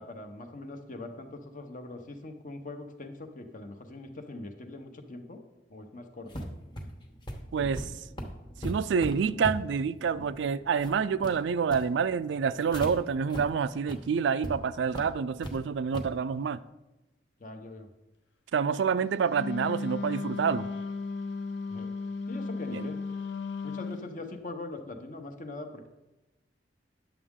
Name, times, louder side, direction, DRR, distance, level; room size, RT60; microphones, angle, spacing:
voice 1, 0.0-5.4 5.7-6.5 17.4-17.9 21.7-21.9 22.3-23.0 23.6-25.9, left 2 dB, 45° left, 0.9 m, -42 dB
sound 1, 6.3-12.9 13.3-13.4 13.8-13.9 14.4-14.5 14.9-15.6 15.9-16.1, equal, 25° left, 1.0 m, -39 dB
voice 2, 7.5-7.9 8.6-16.6 18.5-20.7 22.7-22.9, right 6 dB, 80° right, 0.3 m, -28 dB
Wind instrument woodwind instrument, 19.3-24.1, left 4 dB, 70° left, 0.6 m, -35 dB
10.0 x 7.1 x 3.7 m
head